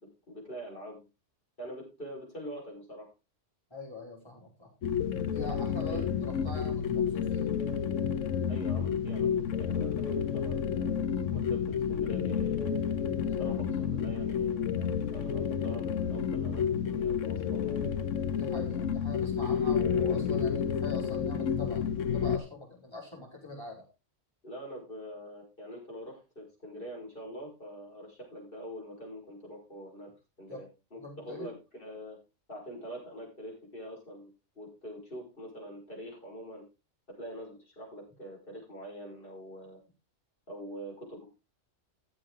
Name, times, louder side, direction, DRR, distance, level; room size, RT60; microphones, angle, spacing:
voice 1, 0.3-1.1 1.6-3.1 5.9-6.0 8.5-9.3 9.6-11.0 11.3-12.8 13.4-14.7 15.1-17.9 24.4-30.1 30.4-32.2 32.5-36.6 37.1-39.8 40.5-41.2, equal, 45° left, -2 dB, 6.0 m, -44 dB
voice 2, 3.7-4.7 5.3-7.5 14.7-15.0 18.3-23.8 30.5-30.6 31.0-31.5, left 3 dB, 20° left, -2 dB, 5.0 m, -43 dB
sound 1, 4.8-22.4, left 7 dB, 90° left, 1.2 m, -30 dB
15.0 x 7.5 x 3.8 m, 0.28 s
omnidirectional pair, 1.3 m